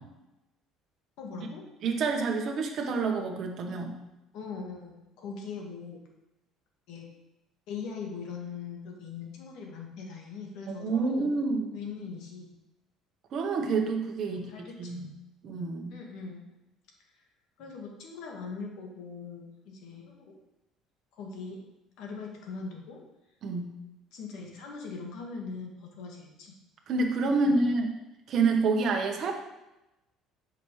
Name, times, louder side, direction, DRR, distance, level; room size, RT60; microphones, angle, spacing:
voice 1, 1.2-1.6 4.3-6.0 6.9-7.1 7.7-11.3 11.7-12.5 14.2-15.1 15.9-16.4 17.1-17.2 17.6-20.4 21.1-21.6 22.0-23.0 24.1-26.5 27.4-27.6, left 5 dB, 70° left, 0 dB, 1.6 m, -41 dB
voice 2, 1.8-4.0 10.8-11.7 13.3-14.4 14.8-15.1 15.4-15.9 23.4-23.7 26.9-27.9 28.3-29.3, right 3 dB, 50° right, 2 dB, 1.1 m, -28 dB
7.1 x 5.8 x 3.2 m, 0.93 s
cardioid pair, 135°, 0 cm